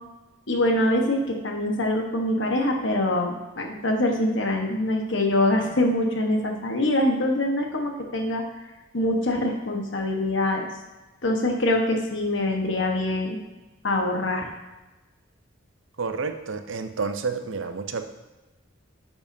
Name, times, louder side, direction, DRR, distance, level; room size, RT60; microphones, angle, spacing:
voice 1, 0.5-8.4 8.9-10.7 11.2-13.4 13.8-14.5, left 1 dB, 70° left, 2 dB, 1.2 m, -24 dB
voice 2, 16.0-18.0, right 4 dB, 70° right, 8 dB, 0.6 m, -30 dB
10.5 x 7.1 x 2.7 m, 1.1 s
head